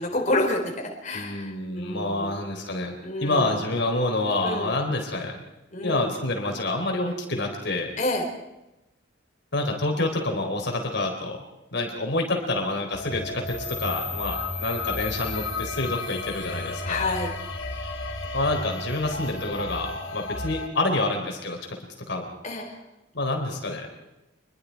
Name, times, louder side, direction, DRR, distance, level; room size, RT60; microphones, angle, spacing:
voice 1, 0.0-2.4 3.0-3.6 4.4-4.7 5.7-6.1 8.0-8.3 16.8-17.3 22.4-22.8, left 2 dB, 40° left, 0 dB, 4.2 m, -28 dB
voice 2, 1.1-2.9 3.2-5.4 5.8-7.9 9.5-11.4 11.7-17.0 18.3-21.6 22.1-22.3 23.1-23.9, left 2 dB, 65° left, 2 dB, 4.2 m, -27 dB
sound 1, 12.9-20.7, left 3 dB, 80° left, 3.3 m, -33 dB
27.0 x 22.5 x 4.8 m, 0.96 s
head